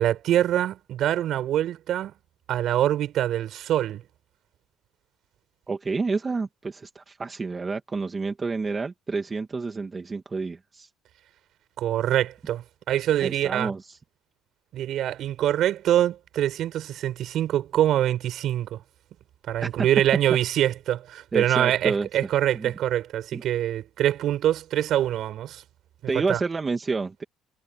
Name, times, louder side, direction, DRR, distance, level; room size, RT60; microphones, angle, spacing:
voice 1, 0.0-2.1 2.5-4.0 11.8-13.7 14.7-18.8 19.5-25.6 26.1-26.4, right 12 dB, 60° right, 7.3 m, -24 dB
voice 2, 5.7-10.9 13.2-14.0 19.6-19.9 21.3-22.1 22.5-22.7 23.3-23.4 26.1-27.2, right 4 dB, 25° right, 2.2 m, -29 dB
cardioid pair, 115°, 0 cm